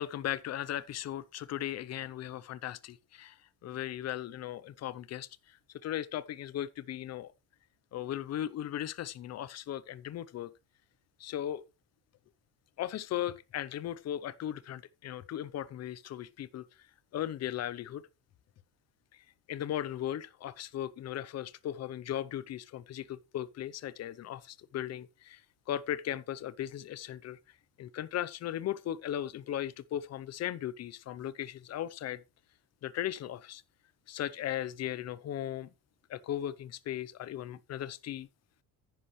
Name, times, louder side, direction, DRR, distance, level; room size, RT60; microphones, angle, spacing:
voice 1, 0.0-3.4 3.6-5.6 5.8-7.3 7.9-10.5 11.2-11.6 12.8-16.7 17.1-18.0 19.5-25.4 25.7-27.4 27.8-32.2 32.8-33.6 34.1-35.7 36.1-38.3, left 11 dB, 40° left, 0.7 m, -37 dB
10.5 x 9.7 x 3.1 m
cardioid pair, 150°, 40 cm